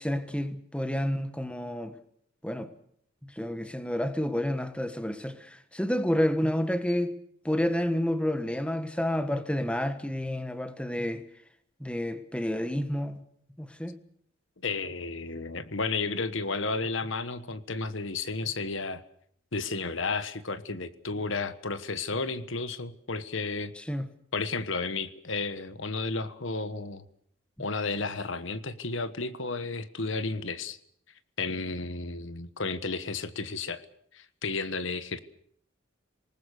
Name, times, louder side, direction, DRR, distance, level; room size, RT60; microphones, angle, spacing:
voice 1, 0.0-1.9 2.4-2.7 3.3-7.1 7.4-11.2 11.8-13.2 13.6-14.0 23.8-24.1, left 1 dB, 5° left, 1.3 m, -29 dB
voice 2, 14.6-19.0 19.5-23.7 24.3-27.0 27.6-30.8 31.4-33.8 34.1-35.2, left 3 dB, 65° left, 1.3 m, -32 dB
27.0 x 19.5 x 6.7 m
head